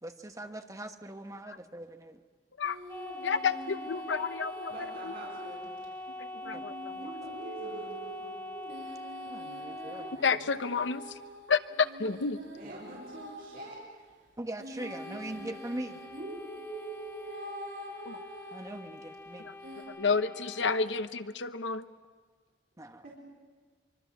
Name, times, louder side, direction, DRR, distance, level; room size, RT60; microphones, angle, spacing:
voice 1, 0.0-2.2 6.5-6.6 7.0-7.1 9.2-10.4 12.6-12.7 14.4-16.0 18.5-19.5 22.8-23.0, right 1 dB, 20° right, 6 dB, 1.3 m, -41 dB
sound 1, 2.6-5.6 5.8-5.9 6.4-13.7 14.6-18.8 19.6-19.8, right 1 dB, 70° right, 6.2 m, -45 dB
sound 2, 2.9-10.2 14.8-20.9, left 1 dB, 15° left, 1.5 m, -43 dB
voice 2, 3.2-4.7 5.0-5.1 6.2-7.1 10.2-11.2 11.5-12.4 18.0-18.2 19.4-19.5 19.9-21.8, left 5 dB, 80° left, 11 dB, 0.9 m, -30 dB
voice 3, 4.7-5.7 7.2-8.3 12.6-13.8 23.0-23.2, right 2 dB, 55° right, -4 dB, 4.3 m, -47 dB
25.0 x 24.0 x 7.3 m, 1.5 s
head